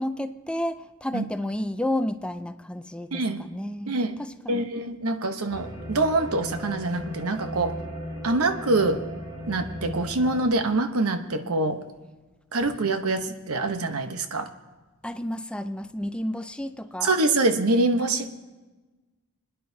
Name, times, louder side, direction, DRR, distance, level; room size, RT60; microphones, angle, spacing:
voice 1, 0.0-4.7 15.0-17.1, left 1 dB, 5° left, 0.3 m, -31 dB
voice 2, 3.1-3.4 3.9-4.2 4.5-7.8 8.2-9.0 9.5-11.8 12.5-14.5 17.0-18.3, right 2 dB, 90° right, 1.0 m, -25 dB
sound 1, 5.5-10.5, equal, 20° right, 2.6 m, -37 dB
27.0 x 10.0 x 2.8 m
head